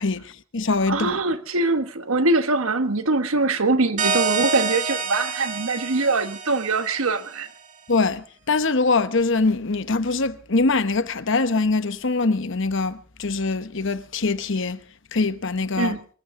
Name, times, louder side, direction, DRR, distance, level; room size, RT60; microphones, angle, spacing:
voice 1, 0.0-1.2 7.9-14.8 15.1-16.0, left 3 dB, 60° left, 1.0 m, -23 dB
voice 2, 0.9-7.5 15.8-16.0, right 3 dB, 80° right, 1.3 m, -23 dB
sound 1, 4.0-7.4, right 4 dB, 35° right, 2.8 m, -27 dB
24.5 x 15.0 x 3.8 m
head